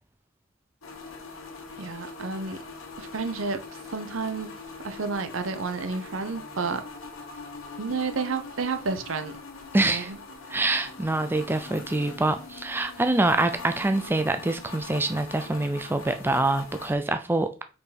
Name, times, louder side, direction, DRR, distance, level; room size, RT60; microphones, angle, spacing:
sound 1, 0.8-16.9, left 4 dB, 80° left, 1.3 m, -42 dB
voice 1, 1.8-2.6 3.0-3.6 3.9-4.6 4.8-6.8 7.8-9.4 9.8-10.2, right 4 dB, 70° right, 0.8 m, -30 dB
voice 2, 9.7-10.1 10.5-17.6, right 2 dB, 10° right, 0.4 m, -25 dB
5.2 x 4.7 x 4.2 m
head